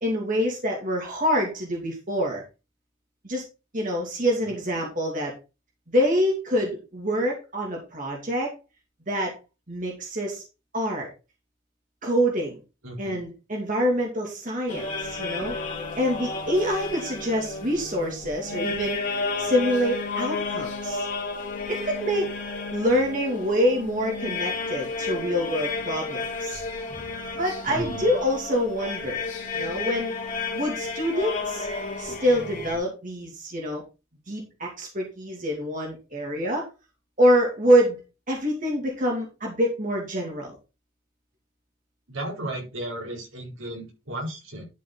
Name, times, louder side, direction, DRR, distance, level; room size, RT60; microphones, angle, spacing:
voice 1, 0.0-2.4 3.2-3.4 3.7-5.3 5.9-8.5 9.1-9.3 9.7-10.4 10.7-11.1 12.0-12.6 13.0-15.5 16.0-19.0 19.4-21.1 21.7-22.3 22.7-26.6 27.4-29.2 29.5-30.1 30.5-31.7 32.0-33.8 34.3-36.7 37.2-38.0 38.3-40.6, equal, 40° right, -1 dB, 2.6 m, -26 dB
voice 2, 12.8-13.2 27.7-28.1 42.1-44.6, right 1 dB, 75° right, -1 dB, 4.5 m, -34 dB
sound 1, 14.7-32.8, left 3 dB, 40° left, 2.7 m, -32 dB
12.0 x 5.7 x 4.0 m, 0.29 s
head